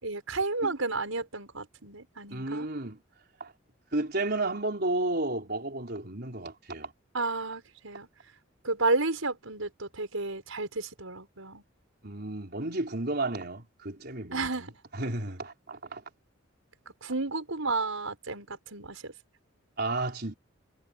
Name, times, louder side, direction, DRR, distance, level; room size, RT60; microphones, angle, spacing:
voice 1, 0.0-2.7 7.1-8.1 8.6-11.6 14.3-14.7 17.0-19.1, right 3 dB, 90° right, 6.0 m, -32 dB
voice 2, 2.3-3.0 3.4-3.5 3.9-6.9 12.0-16.0 19.8-20.3, right 2 dB, 50° right, 4.5 m, -32 dB
head